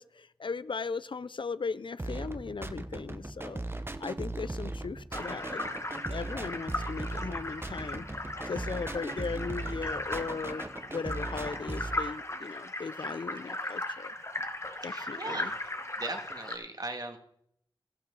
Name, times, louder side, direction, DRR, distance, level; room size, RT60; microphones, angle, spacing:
voice 1, 0.0-3.6 4.0-5.6 6.1-8.1 8.5-14.1 14.8-15.5, left 5 dB, 65° left, 17 dB, 0.4 m, -37 dB
sound 1, 2.0-12.0, right 2 dB, 25° right, 0.7 m, -38 dB
sound 2, 5.1-16.6, left 1 dB, 30° left, 1.2 m, -37 dB
voice 2, 14.8-15.7 16.0-17.2, right 2 dB, 45° right, 5 dB, 1.7 m, -38 dB
14.5 x 11.5 x 3.8 m, 0.72 s
wide cardioid pair, 65°, 9 cm